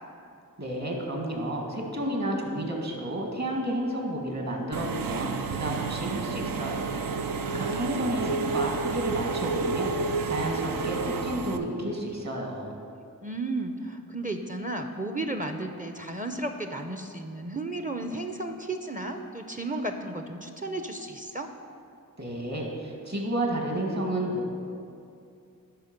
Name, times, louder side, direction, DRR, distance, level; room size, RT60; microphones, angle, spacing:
voice 1, 0.6-12.8 22.2-24.5, right 1 dB, 50° right, 0 dB, 1.7 m, -31 dB
Engine / Mechanisms, 4.7-11.6, right 4 dB, 75° right, 0.5 m, -30 dB
voice 2, 7.5-8.6 13.2-21.5, right 2 dB, 25° right, 6 dB, 0.6 m, -34 dB
11.5 x 4.3 x 5.2 m, 2.5 s
cardioid pair, 40°, 35 cm